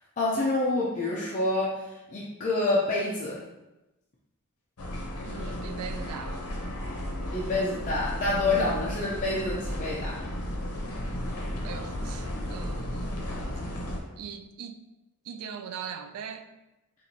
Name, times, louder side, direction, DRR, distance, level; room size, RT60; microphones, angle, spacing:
voice 1, 0.2-3.4 7.3-10.2, left 2 dB, 35° left, -6 dB, 0.5 m, -27 dB
sound 1, 4.8-14.0, equal, 80° left, 0.7 m, -34 dB
voice 2, 5.2-6.5 11.6-13.1 14.2-14.8 15.2-16.5, right 7 dB, 85° right, 8 dB, 0.3 m, -40 dB
4.4 x 2.5 x 2.7 m, 1.0 s
head